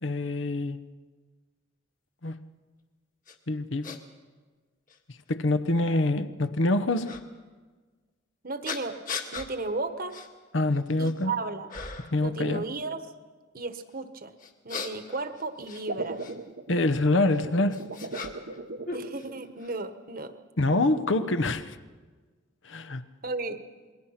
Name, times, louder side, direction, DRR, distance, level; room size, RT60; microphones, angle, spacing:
voice 1, 0.0-0.8 2.2-2.4 3.5-4.0 5.3-7.2 10.5-11.3 12.1-12.6 16.7-17.9 20.6-21.8 22.7-23.0, left 2 dB, 70° left, 1.0 m, -25 dB
sound 1, 3.3-3.4 3.8-4.0 4.9-5.0 7.0-7.2 8.6-9.5 10.1-10.3 10.7-11.2 11.7-12.2 14.4-16.4 17.3-18.6 18.8-19.7, left 4 dB, 45° left, 1.9 m, -38 dB
voice 2, 8.4-9.0 9.3-10.2 11.0-11.7 12.2-13.1 13.5-14.3 14.6-16.2 18.9-20.3 23.2-23.6, right 3 dB, 45° right, 1.3 m, -34 dB
sound 2, 15.6-19.8 20.7-21.3, right 3 dB, 65° right, 1.0 m, -39 dB
27.0 x 21.5 x 5.9 m
head